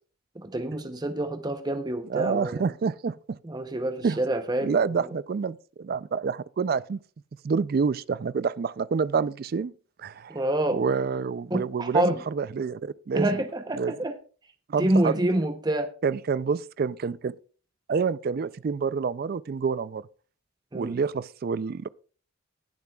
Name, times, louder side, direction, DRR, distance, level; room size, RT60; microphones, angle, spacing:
voice 1, 0.4-2.7 3.4-4.8 10.3-10.8 11.5-12.2 13.1-14.2 14.8-15.9 20.7-21.0, right 1 dB, 20° right, 0.7 m, -27 dB
voice 2, 2.1-3.4 4.0-4.2 4.6-7.0 7.4-9.7 10.0-10.4 10.7-13.3 13.8-13.9 14.7-15.2 16.0-17.3 17.9-20.1 20.7-21.9, right 5 dB, 45° right, 0.3 m, -27 dB
20.0 x 7.0 x 2.3 m
head